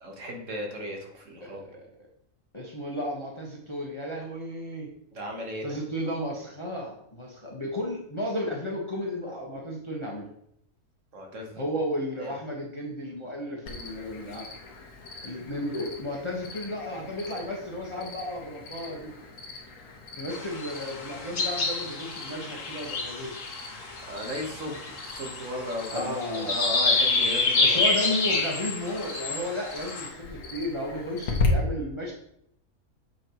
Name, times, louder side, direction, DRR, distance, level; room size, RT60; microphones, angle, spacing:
voice 1, 0.0-1.6 5.1-5.8 11.1-11.6 12.2-12.4 24.0-26.2 26.5-27.8, equal, 60° right, 1 dB, 1.7 m, -35 dB
voice 2, 1.4-1.9 2.5-4.9 5.6-10.3 11.6-14.5 15.2-19.1 20.1-23.3 25.9-26.6 27.6-32.1, left 1 dB, 20° left, -2 dB, 1.2 m, -33 dB
Cricket, 13.7-31.5, left 5 dB, 75° left, 1.6 m, -40 dB
sound 1, 20.3-30.1, left 3 dB, 60° left, 1.6 m, -28 dB
8.1 x 5.7 x 3.1 m, 0.73 s
omnidirectional pair, 1.5 m